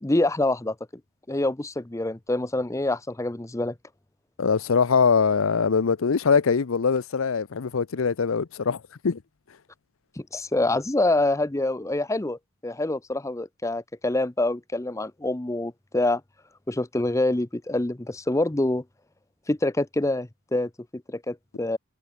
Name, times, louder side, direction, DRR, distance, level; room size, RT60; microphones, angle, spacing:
voice 1, 0.0-0.7 1.3-3.7 10.2-16.2 16.7-18.8 19.5-21.8, left 2 dB, 15° left, 0.6 m, -26 dB
voice 2, 4.4-9.2, left 5 dB, 80° left, 0.6 m, -22 dB
head